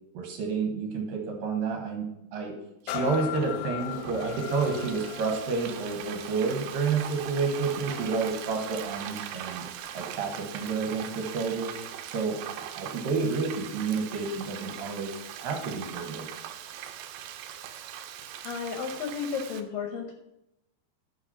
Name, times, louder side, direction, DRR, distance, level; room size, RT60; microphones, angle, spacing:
voice 1, 0.1-2.6 2.8-9.6 9.9-11.7 12.0-16.3, right 4 dB, 65° right, 3 dB, 2.7 m, -30 dB
sound 1, 2.9-10.5 11.0-11.2, left 12 dB, 90° left, 2.9 m, -40 dB
Frying (food), 2.9-19.6, right 10 dB, 85° right, 3.0 m, -40 dB
voice 2, 18.4-20.1, left 6 dB, 75° left, 3 dB, 2.1 m, -33 dB
12.0 x 5.8 x 5.7 m, 0.87 s
omnidirectional pair, 4.9 m